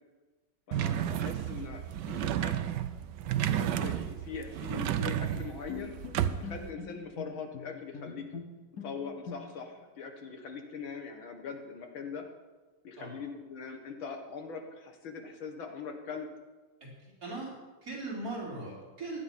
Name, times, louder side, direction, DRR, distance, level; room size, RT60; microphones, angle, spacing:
voice 1, 0.7-2.8 3.5-5.9 6.4-8.3 8.8-12.3 12.8-16.3, left 5 dB, 80° left, 4 dB, 2.4 m, -42 dB
sound 1, 0.7-6.7, right 10 dB, 70° right, 1.2 m, -32 dB
Bowed string instrument, 5.0-9.8, left 6 dB, 60° left, 1.1 m, -44 dB
voice 2, 16.8-17.5 17.8-19.2, right 2 dB, 45° right, -5 dB, 4.8 m, -39 dB
16.0 x 11.0 x 5.6 m, 1.3 s
omnidirectional pair, 2.2 m